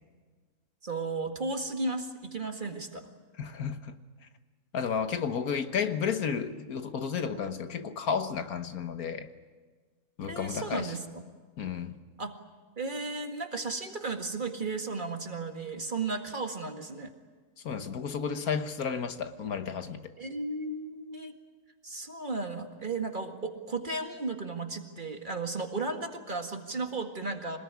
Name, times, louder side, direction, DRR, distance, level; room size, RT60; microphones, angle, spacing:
voice 1, 0.8-3.1 10.3-11.2 12.2-12.4 12.8-17.1 20.2-21.3 21.8-27.6, right 3 dB, 35° right, 2.0 m, -34 dB
voice 2, 3.4-3.9 4.7-9.3 10.2-10.9 11.6-12.0 17.6-20.0, left 6 dB, 85° left, 1.8 m, -32 dB
26.0 x 20.0 x 9.7 m
omnidirectional pair, 1.5 m